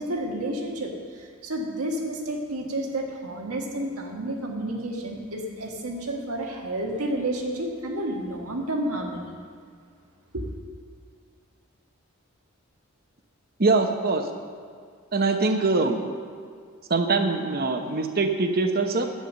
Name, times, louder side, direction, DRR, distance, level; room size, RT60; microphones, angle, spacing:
voice 1, 0.0-9.3 10.3-10.5, right 1 dB, 90° right, 1 dB, 1.6 m, -30 dB
voice 2, 13.6-14.2 15.1-16.0 16.9-19.1, right 3 dB, 45° right, 6 dB, 0.8 m, -23 dB
9.6 x 8.4 x 6.4 m, 2.1 s
head